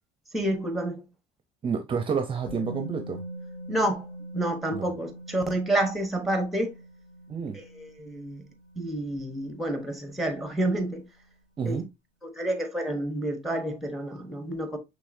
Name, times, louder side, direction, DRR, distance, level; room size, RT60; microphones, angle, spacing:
voice 1, 0.3-1.0 3.7-4.1 4.3-6.7 7.5-8.4 8.8-11.0 11.6-11.8 12.2-14.8, right 1 dB, ahead, 1.0 m, -29 dB
voice 2, 1.6-3.2 4.7-4.9 7.3-7.6 11.6-11.9, right 6 dB, 30° right, 0.6 m, -29 dB
Musical instrument, 2.5-10.4 10.6-10.8, right 1 dB, 25° left, 2.1 m, -43 dB
5.6 x 3.4 x 2.6 m
cardioid pair, 125°, 18 cm